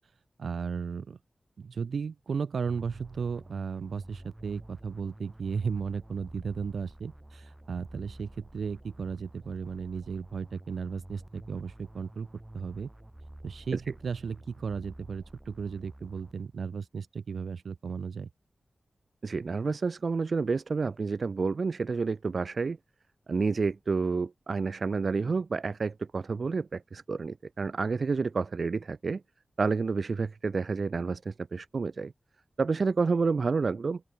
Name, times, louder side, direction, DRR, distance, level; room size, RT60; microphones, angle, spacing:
voice 1, 0.4-1.2 1.6-12.3 12.5-12.9 13.4-18.3, right 6 dB, 80° right, 1.9 m, -35 dB
sound 1, 2.6-16.7, right 1 dB, 15° right, 1.5 m, -49 dB
voice 2, 19.2-22.8 23.3-29.2 29.6-32.1 32.6-34.0, right 4 dB, 60° right, 0.8 m, -29 dB
open air
cardioid pair, 65°, 0 cm